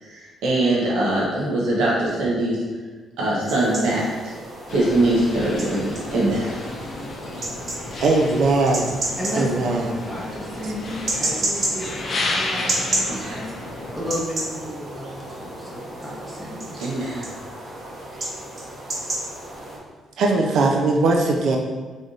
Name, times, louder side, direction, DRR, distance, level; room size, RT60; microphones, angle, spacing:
voice 1, 0.0-2.6 3.2-4.3 4.7-6.5 7.8-8.0 13.1-13.4 16.8-17.3, right 1 dB, 90° right, -6 dB, 1.0 m, -22 dB
sound 1, 3.5-19.8, right 1 dB, 45° right, 1.0 m, -32 dB
sound 2, 4.7-14.2, left 2 dB, 50° left, 0.5 m, -32 dB
voice 2, 8.0-9.0 9.3-10.0 20.2-21.6, right 3 dB, 70° right, 2 dB, 0.5 m, -20 dB
voice 3, 9.2-13.5 13.9-16.9, equal, ahead, -6 dB, 0.9 m, -32 dB
3.4 x 2.6 x 3.8 m, 1.4 s
cardioid pair, 90°, 0 cm